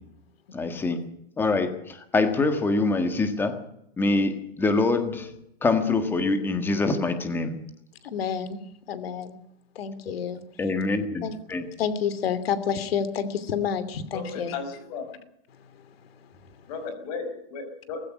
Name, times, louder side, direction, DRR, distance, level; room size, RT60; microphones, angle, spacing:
voice 1, 0.5-1.0 1.4-3.6 4.0-5.3 5.6-7.6 10.6-11.7, left 3 dB, 5° left, 8 dB, 1.6 m, -25 dB
voice 2, 8.0-8.6 8.9-9.4 9.7-10.4 11.2-11.4 11.8-14.5, left 7 dB, 80° left, 14 dB, 2.9 m, -29 dB
voice 3, 14.1-15.0 16.7-18.0, left 4 dB, 40° left, 8 dB, 5.2 m, -35 dB
18.5 x 16.0 x 9.8 m, 0.78 s
supercardioid pair, 175°, 29 cm